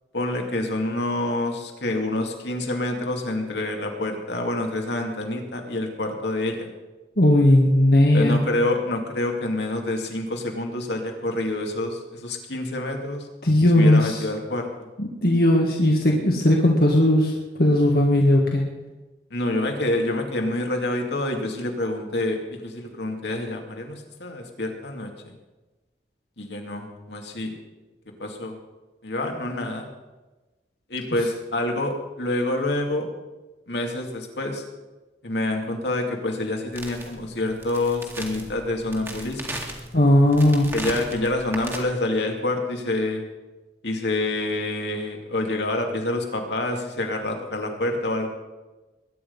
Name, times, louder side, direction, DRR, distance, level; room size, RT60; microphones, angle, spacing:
voice 1, 0.1-6.7 8.1-13.3 13.6-14.9 19.3-25.3 26.4-27.6 28.2-28.6 29.0-29.9 30.9-33.1 33.7-34.6 35.2-39.6 40.7-43.3 43.8-48.3, left 2 dB, 70° left, 2 dB, 2.5 m, -27 dB
voice 2, 7.2-8.4 13.4-14.2 15.0-17.3 17.6-18.6 39.9-40.7, left 1 dB, 55° left, -1 dB, 1.8 m, -17 dB
sound 1, 36.7-41.8, right 1 dB, 15° right, 2.1 m, -37 dB
21.5 x 10.0 x 5.5 m, 1.1 s
head